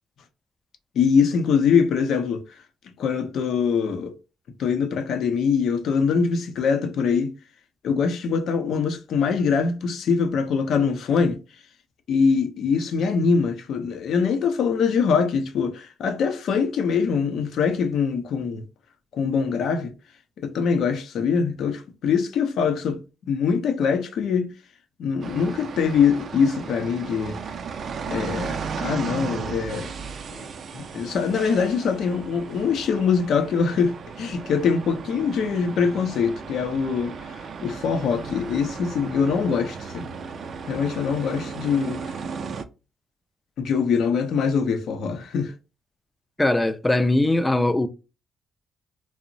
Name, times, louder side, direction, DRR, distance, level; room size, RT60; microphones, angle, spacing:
voice 1, 0.9-2.4 3.0-4.1 4.6-7.3 7.8-11.4 12.1-18.6 19.1-19.9 20.4-23.0 23.3-24.5 25.0-27.4 28.1-29.9 30.3-30.5 30.7-40.1 40.7-42.1 43.6-45.5, left 6 dB, 70° left, 0.5 m, -23 dB
sound 1, 25.2-42.6, right 5 dB, 55° right, 0.4 m, -35 dB
voice 2, 46.4-47.9, left 2 dB, 15° left, 0.4 m, -20 dB
2.8 x 2.0 x 2.5 m
cardioid pair, 90°, 0 cm